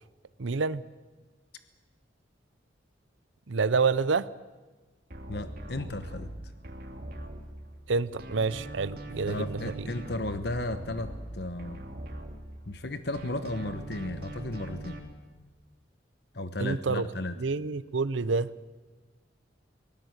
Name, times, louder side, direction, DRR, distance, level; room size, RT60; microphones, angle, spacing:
voice 1, 0.4-0.8 3.5-4.3 7.9-9.9 16.6-17.1 17.4-18.5, right 4 dB, 80° right, 17 dB, 0.7 m, -28 dB
sound 1, 5.1-7.9 8.2-12.8 13.1-15.0, right 1 dB, 50° right, 2.9 m, -41 dB
voice 2, 5.3-6.3 9.3-11.8 12.7-15.0 16.3-17.4, left 2 dB, 60° left, 10 dB, 1.1 m, -34 dB
24.5 x 18.5 x 8.1 m, 1.3 s
head